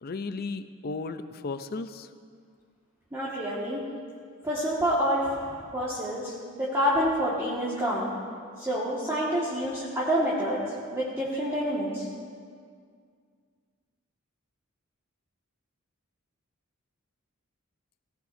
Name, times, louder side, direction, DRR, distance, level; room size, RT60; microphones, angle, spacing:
voice 1, 0.0-2.1, left 3 dB, 45° left, 10 dB, 0.6 m, -35 dB
voice 2, 3.1-3.8 4.4-8.1 8.6-10.6 10.9-12.1, equal, 15° right, -8 dB, 1.8 m, -28 dB
17.5 x 17.0 x 2.7 m, 2.1 s
head